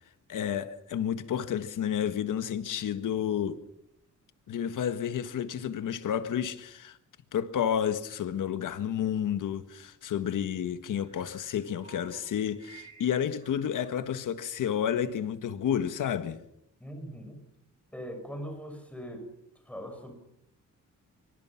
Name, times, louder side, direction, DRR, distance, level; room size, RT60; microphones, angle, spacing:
voice 1, 0.3-3.6 4.5-7.0 7.3-16.4, left 9 dB, 80° left, 1.6 m, -31 dB
sound 1, 10.9-14.2 14.6-14.9, right 5 dB, 25° right, 6.2 m, -54 dB
voice 2, 16.8-17.4 17.9-19.3 19.6-20.1, equal, 5° left, 5.9 m, -40 dB
25.5 x 25.0 x 5.9 m
wide cardioid pair, 175°, 31 cm